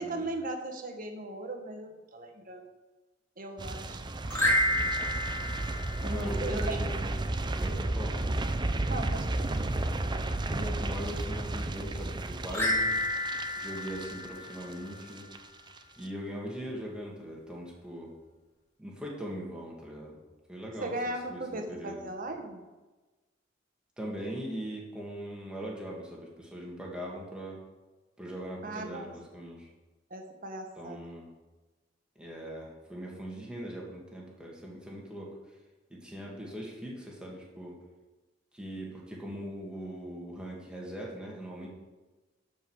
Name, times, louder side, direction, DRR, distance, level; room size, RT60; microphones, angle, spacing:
voice 1, 0.0-2.7 3.4-4.9 6.0-6.8 8.8-9.7 20.8-22.6 28.6-29.1 30.1-31.0, right 2 dB, 45° right, 4 dB, 1.4 m, -38 dB
sound 1, 3.6-14.7 15.0-15.4 15.7-15.8, right 2 dB, 25° right, 0.5 m, -33 dB
sound 2, 4.3-6.7 12.5-15.1, left 1 dB, 15° left, 2.7 m, -30 dB
voice 2, 6.0-7.2 7.6-8.2 10.5-12.9 13.6-15.3 16.0-18.1 18.8-20.2 20.5-20.9 21.3-22.0 24.0-27.6 28.2-29.7 30.8-31.3 32.2-35.3 35.9-37.8 38.5-41.7, equal, 5° right, -3 dB, 2.2 m, -40 dB
12.0 x 5.4 x 6.4 m, 1.2 s
head